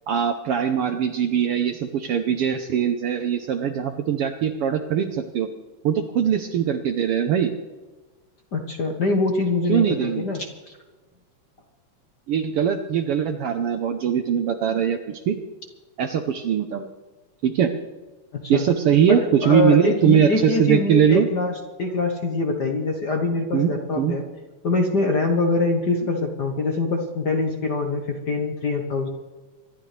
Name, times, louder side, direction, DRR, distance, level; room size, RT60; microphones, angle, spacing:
voice 1, 0.1-5.5 5.8-7.5 9.7-10.3 12.3-15.4 16.0-16.9 17.4-17.7 18.5-21.3 23.5-24.2, right 8 dB, 70° right, 7 dB, 1.4 m, -21 dB
voice 2, 8.5-10.5 18.3-18.6 19.4-24.2 24.6-29.1, left 3 dB, 50° left, 2 dB, 1.3 m, -24 dB
26.0 x 12.0 x 3.3 m, 1.3 s
omnidirectional pair, 3.4 m